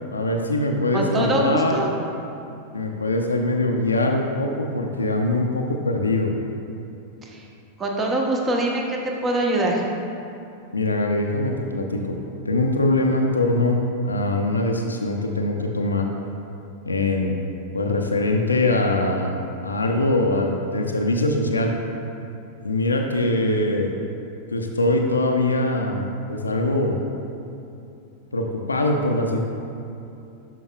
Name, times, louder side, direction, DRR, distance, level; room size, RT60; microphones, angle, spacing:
voice 1, 0.1-1.8 2.7-6.3 10.7-12.2 12.4-13.8 14.0-16.1 16.8-17.4 17.7-19.4 19.6-21.7 22.6-24.0 24.5-27.0 28.3-29.4, left 2 dB, 75° left, 2 dB, 0.5 m, -22 dB
voice 2, 0.9-1.9 7.2-7.5 7.8-9.8, right 1 dB, 20° right, 0 dB, 0.9 m, -23 dB
11.5 x 5.4 x 2.3 m, 2.7 s
figure-of-eight pair, 90°, 0 cm